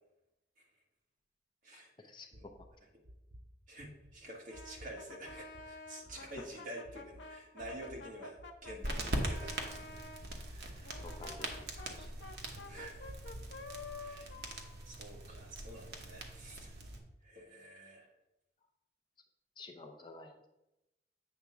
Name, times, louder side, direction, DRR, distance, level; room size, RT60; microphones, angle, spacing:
voice 1, 1.7-2.5 6.1-6.3 11.0-11.7 12.0-12.1 19.6-20.5, left 3 dB, 25° left, 4 dB, 0.5 m, -51 dB
sound 1, 2.3-2.7 3.0-3.5 3.8-4.1 4.5-5.0 5.3-5.7 6.1-6.4 6.8-7.2 7.6-8.1 8.4-8.8 9.2-9.6 9.9-10.4 10.7-11.1 11.5-11.9 12.3-12.7 13.0-13.5, equal, 30° right, 0.6 m, -53 dB
voice 2, 3.7-8.4 8.6-10.0 10.5-11.0 11.5-11.7 12.6-13.0 14.0-14.3 14.8-16.7 17.2-18.1, right 1 dB, 45° right, -2 dB, 1.6 m, -49 dB
Brass instrument, 4.5-10.2 10.8-15.6, left 3 dB, 80° left, 0.7 m, -50 dB
sound 2, 8.8-17.0, right 1 dB, 65° right, 1.0 m, -42 dB
8.2 x 3.5 x 5.8 m, 0.93 s
head